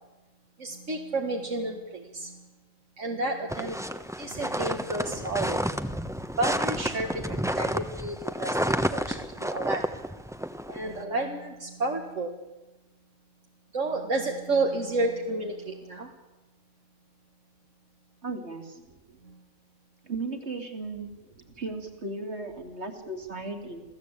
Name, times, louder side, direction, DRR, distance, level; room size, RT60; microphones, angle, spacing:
voice 1, 0.6-2.4 3.0-3.8 4.2-5.6 6.4-9.9 10.7-12.4 13.7-16.1 19.3-19.4, right 2 dB, 80° right, 1 dB, 2.3 m, -31 dB
sound 1, 3.5-11.0, equal, 5° right, 1.0 m, -30 dB
voice 2, 18.2-18.8 20.0-21.1 21.6-23.8, right 3 dB, 60° right, 4 dB, 3.4 m, -35 dB
28.5 x 16.5 x 8.7 m, 1.1 s
omnidirectional pair, 1.3 m